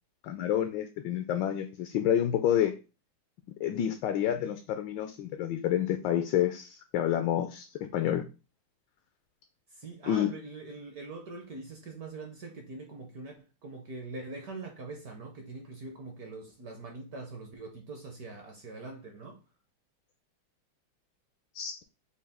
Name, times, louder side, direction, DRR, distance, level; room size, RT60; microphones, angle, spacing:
voice 1, 0.2-2.7 3.6-8.2 10.1-10.3 21.5-21.8, left 10 dB, 75° left, 1.1 m, -29 dB
voice 2, 9.7-19.4, right 3 dB, 60° right, 1.0 m, -43 dB
6.7 x 2.3 x 3.5 m
omnidirectional pair, 2.3 m